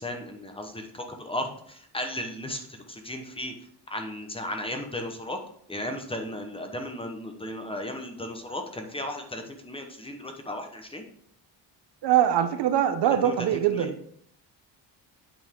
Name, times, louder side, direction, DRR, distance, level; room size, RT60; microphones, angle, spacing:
voice 1, 0.0-2.6 2.9-3.5 3.9-5.4 5.7-11.0 13.0-13.9, left 1 dB, 10° left, 4 dB, 1.0 m, -35 dB
voice 2, 12.0-13.9, right 10 dB, 60° right, 9 dB, 0.8 m, -23 dB
8.5 x 5.5 x 3.7 m, 0.65 s
cardioid pair, 135°, 45 cm